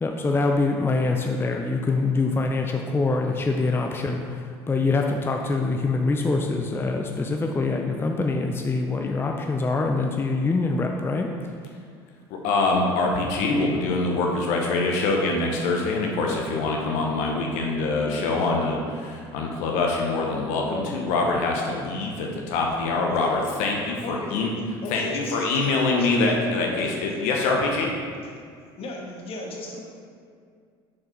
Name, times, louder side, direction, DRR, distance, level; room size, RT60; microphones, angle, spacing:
voice 1, 0.0-11.3, left 3 dB, 20° left, 2 dB, 0.5 m, -24 dB
voice 2, 12.3-24.5 24.9-27.9, left 3 dB, 70° left, 0 dB, 0.9 m, -24 dB
voice 3, 24.0-24.4 24.8-26.1 26.4-26.8 28.8-29.8, left 2 dB, 50° left, -1 dB, 1.5 m, -36 dB
6.5 x 4.4 x 4.4 m, 2.2 s
hypercardioid pair, 80°, 13 cm